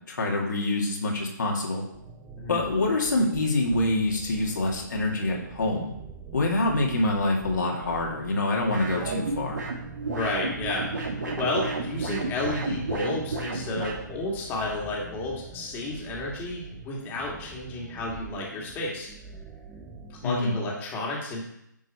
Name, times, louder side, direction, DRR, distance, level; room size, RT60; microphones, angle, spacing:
voice 1, 0.0-1.8 2.5-5.9 6.3-9.6 20.2-20.5, left 2 dB, 65° left, -1 dB, 2.3 m, -26 dB
sound 1, 1.9-20.4, right 5 dB, 15° right, 0.9 m, -45 dB
voice 2, 2.4-2.7 10.0-19.1 20.1-21.4, left 2 dB, 20° left, -2 dB, 2.2 m, -32 dB
sound 2, 8.7-14.0, right 3 dB, 65° right, 2.4 m, -32 dB
9.9 x 6.3 x 4.3 m, 0.79 s
figure-of-eight pair, 145°, 11 cm